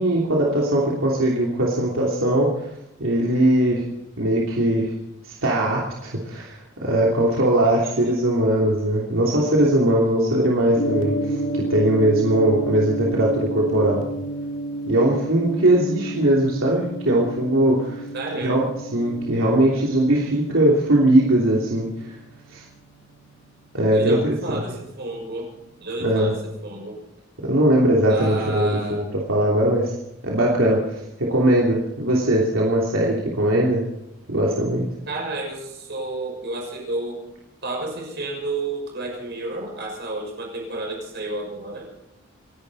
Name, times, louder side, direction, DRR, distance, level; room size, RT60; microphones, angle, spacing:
voice 1, 0.0-2.5 3.0-3.8 4.2-4.9 5.2-14.0 14.9-18.0 18.4-18.6 18.9-22.1 22.5-22.6 23.7-24.6 26.0-26.3 27.4-29.0 29.3-29.9 30.2-33.8 34.3-34.9, right 1 dB, 80° right, -3 dB, 3.1 m, -20 dB
voice 2, 7.6-7.9 18.1-18.6 23.9-25.5 25.8-27.0 28.1-29.0 35.1-37.2 37.6-41.9, right 2 dB, 55° right, 1 dB, 6.3 m, -31 dB
Gong, 10.8-24.9, right 1 dB, 70° left, 2.5 m, -32 dB
28.5 x 11.5 x 4.1 m, 0.91 s
head